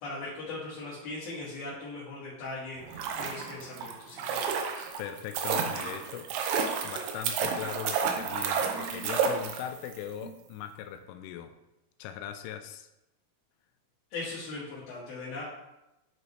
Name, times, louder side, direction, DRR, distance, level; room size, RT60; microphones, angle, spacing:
voice 1, 0.0-4.9 14.1-15.4, left 3 dB, 60° left, -8 dB, 3.0 m, -39 dB
sound 1, 2.8-10.0 10.2-10.3, right 6 dB, 90° right, 3.3 m, -31 dB
voice 2, 5.0-6.3 6.8-11.5 12.0-12.9, left 10 dB, 85° left, 8 dB, 2.9 m, -40 dB
10.5 x 5.1 x 3.2 m, 0.91 s
omnidirectional pair, 5.9 m